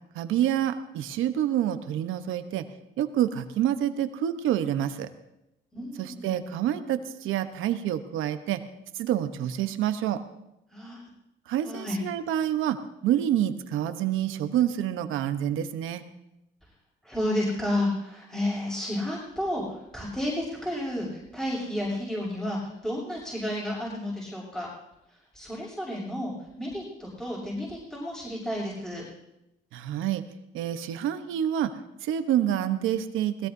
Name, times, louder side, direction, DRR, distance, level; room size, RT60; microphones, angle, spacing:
voice 1, 0.1-2.7 3.0-5.1 6.0-8.6 8.9-10.2 11.5-12.8 13.0-16.0 29.7-30.2 30.5-31.7 32.0-33.5, right 11 dB, 90° right, 10 dB, 1.0 m, -27 dB
voice 2, 5.7-6.4 10.7-11.0 11.6-12.0 17.0-21.1 21.3-24.7 25.3-29.1, left 1 dB, 5° left, -4 dB, 6.3 m, -31 dB
20.5 x 16.0 x 2.7 m, 0.87 s
cardioid pair, 90°, 20 cm